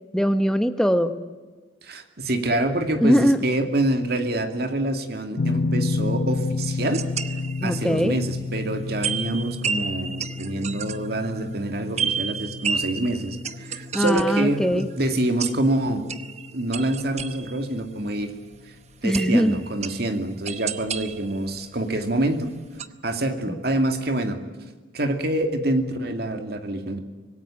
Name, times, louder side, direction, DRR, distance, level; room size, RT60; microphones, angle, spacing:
voice 1, 0.1-1.1 3.0-3.4 7.6-8.2 13.9-14.9 19.0-19.6 23.5-23.6, equal, 5° left, 8 dB, 1.0 m, -21 dB
voice 2, 1.8-7.1 7.6-16.1 16.5-18.3 19.0-22.5 23.0-24.4 24.9-27.0, right 1 dB, 55° right, 6 dB, 2.4 m, -26 dB
sound 1, 5.4-18.3, left 3 dB, 85° left, 1.0 m, -32 dB
sound 2, 6.9-7.9 8.3-8.4 9.0-17.8 18.5-18.6 19.1-22.2 22.5-22.9, right 6 dB, 35° right, 0.9 m, -32 dB
25.5 x 18.5 x 8.9 m, 1.3 s
head